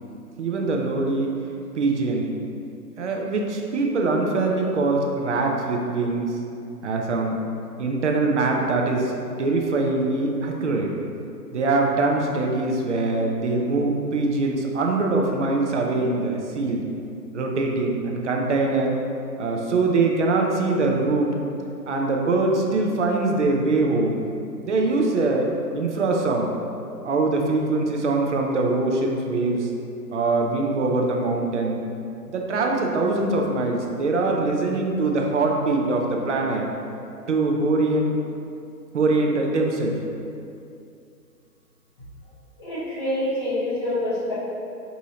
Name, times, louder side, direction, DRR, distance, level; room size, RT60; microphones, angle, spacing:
voice 1, 0.4-1.3 1.7-2.3 3.0-6.4 6.8-7.4 7.8-9.1 9.4-10.9 11.5-16.8 17.3-18.9 19.4-21.3 21.9-24.2 24.6-25.5 25.7-26.5 27.0-29.7 30.1-31.8 32.3-36.7 37.3-38.2 38.9-40.0, right 3 dB, 50° right, 0 dB, 0.4 m, -23 dB
voice 2, 42.6-44.3, left 1 dB, 15° left, -11 dB, 0.7 m, -26 dB
4.8 x 2.7 x 2.8 m, 2.6 s
hypercardioid pair, 160°, 48 cm